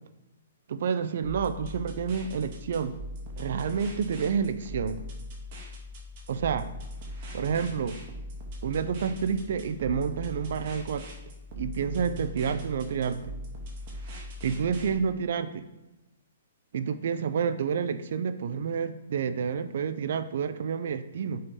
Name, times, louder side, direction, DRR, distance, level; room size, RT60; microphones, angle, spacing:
voice 1, 0.7-2.9 3.4-5.0 6.3-6.7 7.3-8.0 8.6-11.1 11.6-13.4 14.4-15.6 16.7-21.4, right 6 dB, 60° right, 11 dB, 0.3 m, -29 dB
sound 1, 1.2-14.9, left 1 dB, 40° right, 0.9 m, -41 dB
5.3 x 2.8 x 3.7 m, 1.0 s
hypercardioid pair, 155°, 0 cm